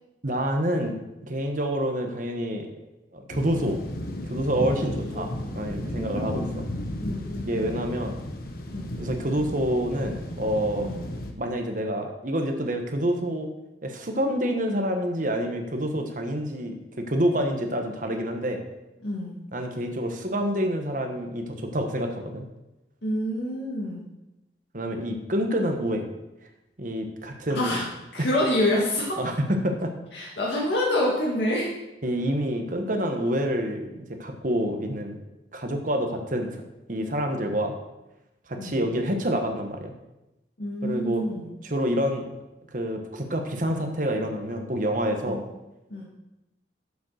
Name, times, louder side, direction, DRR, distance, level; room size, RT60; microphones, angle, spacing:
voice 1, 0.2-0.9 1.2-2.7 3.1-3.8 4.3-6.7 7.4-8.2 9.0-10.9 11.3-13.5 13.8-18.6 19.5-22.5 24.7-26.0 26.8-27.8 29.2-29.9 32.0-35.2 35.5-36.6 36.9-37.7 38.5-39.9 40.8-42.3 42.7-45.4, equal, 50° right, 4 dB, 1.2 m, -27 dB
sound 1, 3.3-11.3, left 1 dB, 55° left, 1.1 m, -34 dB
voice 2, 4.8-5.3 6.0-6.7 7.0-7.8 8.7-9.0 10.8-11.0 19.0-19.3 23.0-24.0 27.5-27.8 28.1-29.3 30.1-31.7 38.6-38.8 40.6-41.5 45.3-45.4 45.9-46.0, left 1 dB, 80° left, -5 dB, 2.2 m, -28 dB
7.4 x 7.0 x 6.5 m, 0.95 s
head